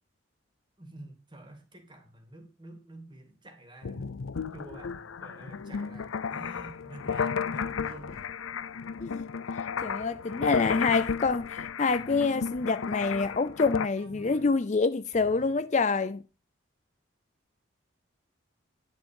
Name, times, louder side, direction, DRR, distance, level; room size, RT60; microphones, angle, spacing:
voice 1, 0.8-4.1 4.5-8.1, right 1 dB, 20° right, 2.4 m, -48 dB
sound 1, 3.8-13.9, left 6 dB, 85° left, 0.6 m, -33 dB
sound 2, 7.9-8.4 11.9-12.4 14.0-14.6 15.1-15.6, equal, 80° right, 3.3 m, -51 dB
voice 2, 9.8-16.2, left 4 dB, 35° left, 0.4 m, -27 dB
10.5 x 7.4 x 5.3 m
head